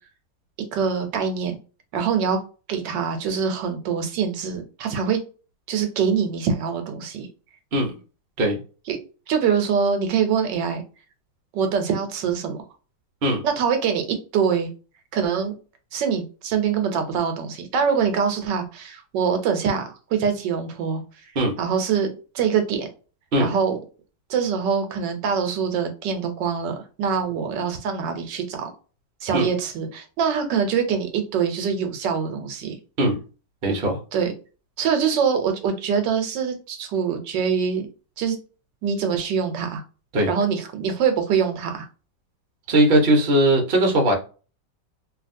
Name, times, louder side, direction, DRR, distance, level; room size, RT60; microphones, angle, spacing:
voice 1, 0.7-1.6 1.9-2.4 2.7-5.2 5.7-7.3 8.9-9.0 9.3-10.8 11.5-12.6 13.4-14.7 15.1-15.5 15.9-21.0 21.6-22.1 22.3-22.9 23.4-23.8 24.3-28.7 29.2-32.8 34.1-34.3 34.8-37.9 38.2-38.4 38.8-39.8 40.3-41.9, right 6 dB, 75° right, 1.2 m, -24 dB
voice 2, 33.6-34.0 40.1-40.3 42.7-44.1, right 1 dB, 45° right, 0.7 m, -19 dB
2.8 x 2.8 x 2.5 m
omnidirectional pair, 2.0 m